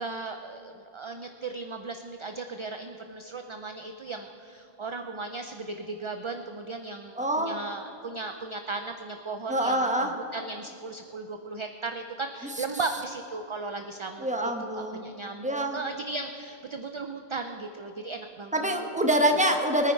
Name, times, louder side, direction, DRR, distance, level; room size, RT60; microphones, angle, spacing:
voice 1, 0.0-18.9, right 3 dB, 40° right, 6 dB, 0.5 m, -36 dB
voice 2, 7.2-7.5 9.5-10.1 14.2-15.0 15.4-15.8 18.5-19.9, right 1 dB, 10° right, 4 dB, 1.0 m, -25 dB
22.0 x 9.6 x 4.6 m, 2.6 s
omnidirectional pair, 1.0 m